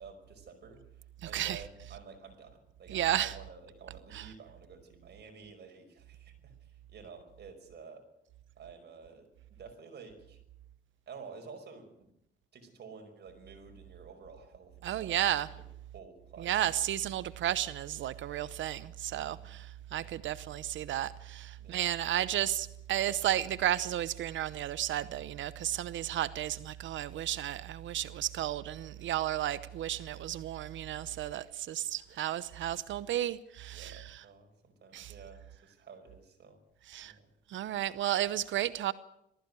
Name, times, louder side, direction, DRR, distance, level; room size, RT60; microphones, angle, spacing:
voice 1, 0.0-8.1 8.6-10.4 11.1-12.1 12.5-15.6 15.9-17.0 19.3-19.6 20.0-20.2 21.6-21.8 31.4-31.5 32.1-32.2 33.7-36.6 37.0-37.3, right 5 dB, 55° right, 5.3 m, -51 dB
voice 2, 2.9-3.3 4.1-4.2 14.8-15.5 16.4-19.7 19.9-34.0 34.9-35.1 36.9-37.1 37.5-38.9, right 12 dB, 75° right, 0.8 m, -33 dB
19.5 x 15.0 x 9.7 m
cardioid pair, 90°, 20 cm